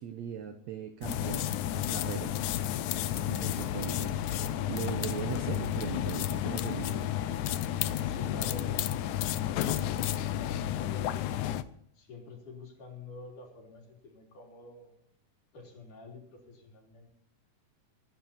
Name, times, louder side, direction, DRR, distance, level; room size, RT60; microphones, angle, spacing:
voice 1, 0.0-2.4 3.1-7.1, right 9 dB, 85° right, 9 dB, 1.5 m, -39 dB
sound 1, 1.0-11.6, left 12 dB, 85° left, 1.8 m, -31 dB
voice 2, 8.0-9.1 9.4-11.4 11.9-15.0 15.5-17.1, left 3 dB, 55° left, 0 dB, 4.9 m, -48 dB
24.5 x 10.5 x 4.2 m, 0.68 s
omnidirectional pair, 4.5 m